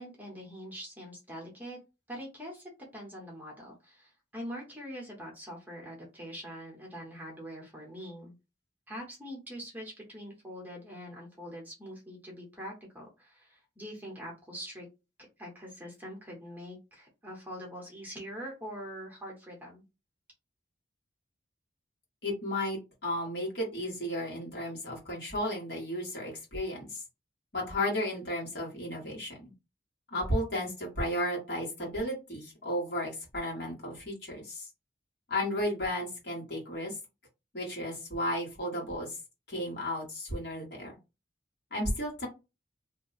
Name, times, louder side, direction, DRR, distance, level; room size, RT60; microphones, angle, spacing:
voice 1, 0.0-1.8 2.1-8.3 8.9-14.9 15.4-19.8, equal, 10° right, -1 dB, 1.0 m, -43 dB
voice 2, 22.2-27.0 27.5-29.5 30.1-34.7 35.3-36.9 37.5-39.2 39.5-40.9 41.7-42.3, left 1 dB, 55° left, -3 dB, 1.5 m, -33 dB
2.7 x 2.2 x 4.0 m, 0.27 s
head